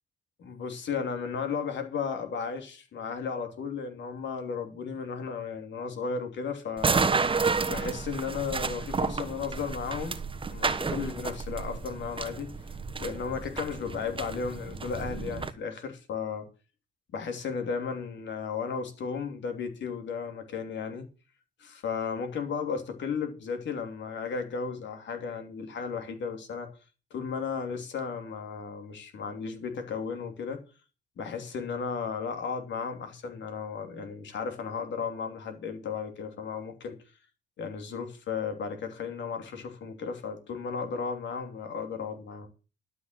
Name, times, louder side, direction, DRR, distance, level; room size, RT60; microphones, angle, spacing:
voice 1, 0.4-6.9 7.6-10.2 10.5-12.5 13.0-16.5 17.1-21.1 21.6-26.7 27.1-30.6 31.2-37.0 37.6-42.5, left 5 dB, 65° left, 3.0 m, -34 dB
sound 1, 6.8-15.5, right 4 dB, 25° right, 1.2 m, -31 dB
12.5 x 6.2 x 7.6 m
cardioid pair, 90°, 20 cm